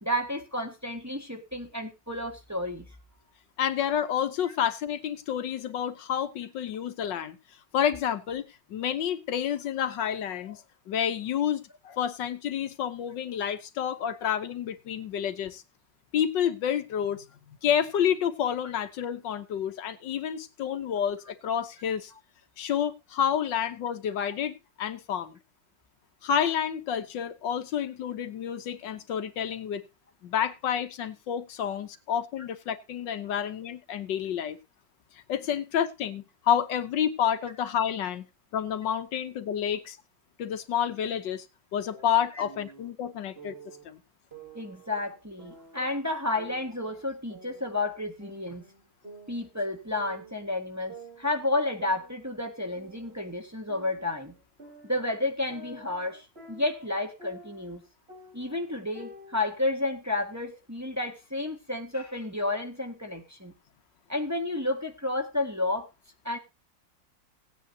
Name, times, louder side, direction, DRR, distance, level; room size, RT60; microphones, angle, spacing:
voice 1, 0.0-2.8 42.4-42.5 44.5-48.6 49.3-54.3 54.8-57.8 58.3-63.5 64.1-65.9 66.2-66.4, left 2 dB, 10° right, 1.6 m, -31 dB
voice 2, 3.6-7.4 7.7-8.4 8.7-15.6 16.1-17.2 17.6-22.1 22.6-25.3 26.2-29.8 30.2-34.6 35.3-38.3 38.5-40.0 40.4-41.4 41.7-43.5 43.8-44.0 45.8-45.9, left 9 dB, 75° left, 1.6 m, -29 dB
sound 1, 41.8-42.9 43.4-43.8 44.3-45.9 46.4-47.9 48.2-49.7 49.9-50.5 50.9-53.3 53.7-57.8 58.1-59.4, right 2 dB, 30° right, 3.6 m, -50 dB
17.5 x 9.4 x 2.8 m
omnidirectional pair, 2.0 m